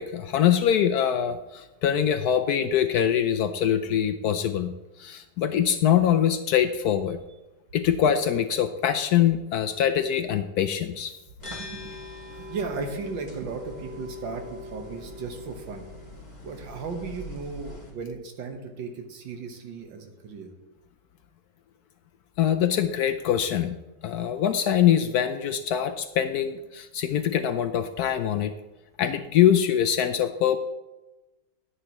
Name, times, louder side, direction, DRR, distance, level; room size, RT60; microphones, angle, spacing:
voice 1, 0.0-4.7 5.0-7.2 7.7-11.1 22.4-23.8 24.0-28.5 29.0-30.6, left 9 dB, 70° left, 9 dB, 0.9 m, -23 dB
sound 1, 11.4-17.9, left 3 dB, 25° left, 2.2 m, -41 dB
voice 2, 11.4-12.0 12.4-15.9 16.4-20.5, right 4 dB, 85° right, 4 dB, 2.0 m, -36 dB
10.5 x 9.8 x 3.0 m, 1.1 s
omnidirectional pair, 2.0 m